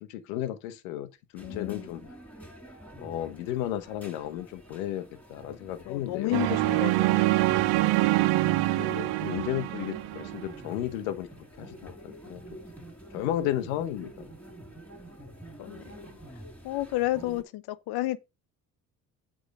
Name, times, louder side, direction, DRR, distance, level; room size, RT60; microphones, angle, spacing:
voice 1, 0.1-2.0 3.0-6.5 8.7-11.3 11.6-12.4 13.1-14.3, left 12 dB, 85° left, 1.1 m, -34 dB
voice 2, 1.4-2.0 5.9-7.8 15.6-15.9 16.6-18.2, left 16 dB, 70° left, 0.8 m, -32 dB
sound 1, 1.4-17.4, right 1 dB, 5° left, 4.9 m, -47 dB
sound 2, 6.3-10.5, right 18 dB, 80° right, 0.9 m, -25 dB
8.1 x 3.9 x 6.3 m
hypercardioid pair, 60°, 40 cm